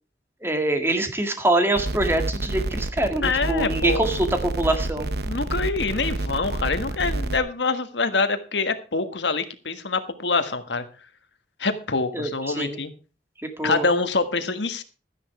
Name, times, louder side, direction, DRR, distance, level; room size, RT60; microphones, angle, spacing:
voice 1, 0.4-5.1 12.1-12.8 13.4-13.9, right 1 dB, 15° right, 6 dB, 2.0 m, -24 dB
sound 1, 1.8-7.4, right 1 dB, 60° right, 1.1 m, -28 dB
voice 2, 3.2-4.0 5.3-10.8 11.6-12.9 13.6-14.8, left 3 dB, 80° left, 10 dB, 1.5 m, -25 dB
13.0 x 9.8 x 4.8 m, 0.36 s
head